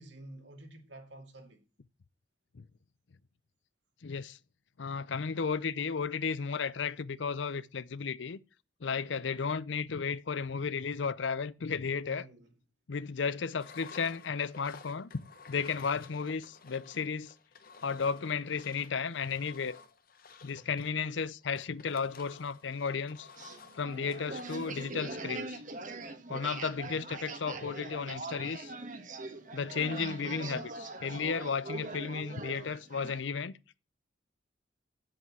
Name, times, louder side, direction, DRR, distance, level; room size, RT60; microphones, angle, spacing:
voice 1, 0.0-1.6 12.1-12.5 26.3-26.5, right 1 dB, 70° right, 2.6 m, -50 dB
voice 2, 4.0-4.4 4.8-8.4 8.8-12.3 12.9-17.3 17.8-19.8 20.4-23.3 23.7-25.6 26.3-28.7 29.5-33.5, left 5 dB, 75° left, 0.6 m, -34 dB
Engine, 13.6-25.0, left 5 dB, 50° left, 1.1 m, -53 dB
sound 1, 23.4-33.2, right 3 dB, 45° right, 1.3 m, -42 dB
8.2 x 7.8 x 7.3 m
head